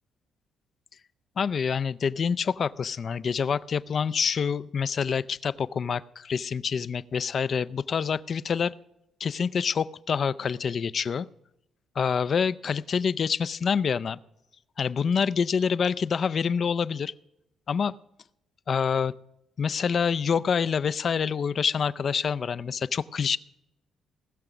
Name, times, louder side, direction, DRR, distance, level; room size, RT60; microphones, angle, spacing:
voice 1, 1.4-8.7 9.2-11.3 12.0-14.2 14.8-17.1 17.7-17.9 18.7-19.1 19.6-23.4, left 6 dB, 50° left, 16 dB, 0.5 m, -26 dB
19.0 x 6.7 x 6.1 m, 0.85 s
cardioid pair, 90°, 0 cm